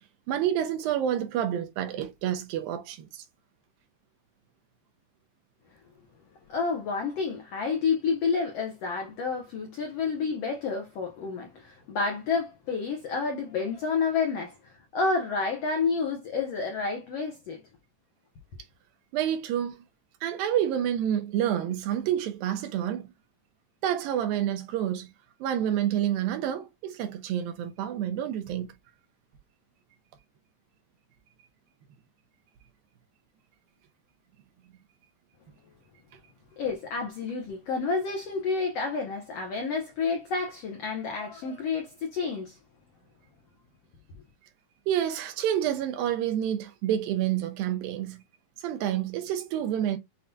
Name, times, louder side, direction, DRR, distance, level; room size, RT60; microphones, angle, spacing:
voice 1, 0.3-3.2 19.1-19.8 20.2-23.1 23.8-25.1 25.4-28.7 44.9-48.2 48.6-50.0, right 10 dB, 80° right, 2.7 m, -28 dB
voice 2, 6.5-17.6 36.6-42.6, left 4 dB, 85° left, 1.4 m, -29 dB
7.4 x 2.7 x 2.2 m
omnidirectional pair, 4.2 m